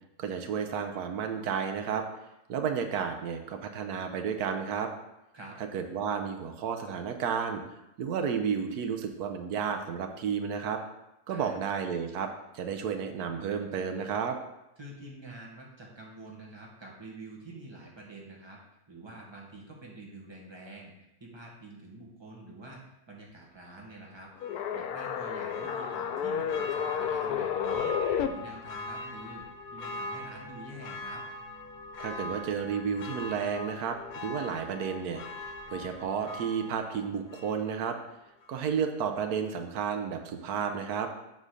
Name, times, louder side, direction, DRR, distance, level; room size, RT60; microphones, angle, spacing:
voice 1, 0.2-2.1 2.5-4.9 5.7-7.6 8.0-10.8 11.3-14.4 32.0-38.0 38.5-41.1, right 7 dB, 85° right, 5 dB, 1.2 m, -32 dB
voice 2, 14.8-18.6 18.9-20.9 21.2-28.0 28.2-29.5 29.7-31.2, right 2 dB, 20° right, -2 dB, 1.4 m, -47 dB
sound 1, 24.4-28.3, left 8 dB, 90° left, 1.1 m, -31 dB
Church bell, 24.4-38.0 38.4-38.5, left 2 dB, 70° left, 1.2 m, -42 dB
7.4 x 3.8 x 6.4 m, 0.91 s
omnidirectional pair, 1.6 m